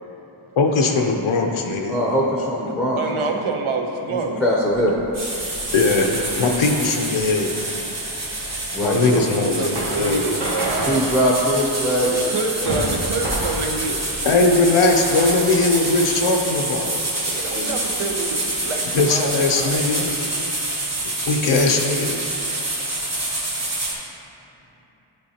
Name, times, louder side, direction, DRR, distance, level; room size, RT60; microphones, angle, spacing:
voice 1, 0.6-2.0 5.7-7.5 8.8-9.7 10.0-10.3 14.2-17.0 18.9-20.1 21.3-22.2, left 3 dB, 80° left, 2 dB, 0.6 m, -19 dB
voice 2, 1.8-3.0 3.3-3.4 4.1-5.0 8.7-9.3 10.9-12.4 17.5-17.7, equal, ahead, -4 dB, 0.6 m, -21 dB
voice 3, 3.0-4.4 9.6-11.1 12.3-14.0 17.2-20.2, right 3 dB, 80° right, 3 dB, 0.7 m, -27 dB
sound 1, 4.6-16.2, right 1 dB, 50° right, 1.3 m, -32 dB
sound 2, 5.1-23.9, right 2 dB, 30° right, 1.1 m, -27 dB
9.8 x 3.8 x 2.8 m, 2.9 s
wide cardioid pair, 85°, 49 cm